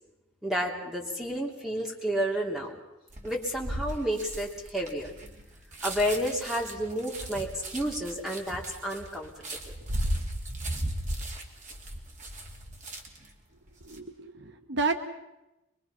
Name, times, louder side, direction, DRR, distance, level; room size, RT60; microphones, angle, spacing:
voice 1, 0.4-2.8 3.2-5.1 5.8-9.7, equal, 5° right, -1 dB, 3.1 m, -31 dB
sound 1, 3.1-13.3 13.7-14.0, right 1 dB, 40° right, 2.6 m, -36 dB
voice 2, 13.9-14.9, right 3 dB, 60° right, 7 dB, 1.2 m, -30 dB
23.5 x 23.5 x 5.7 m, 0.98 s
head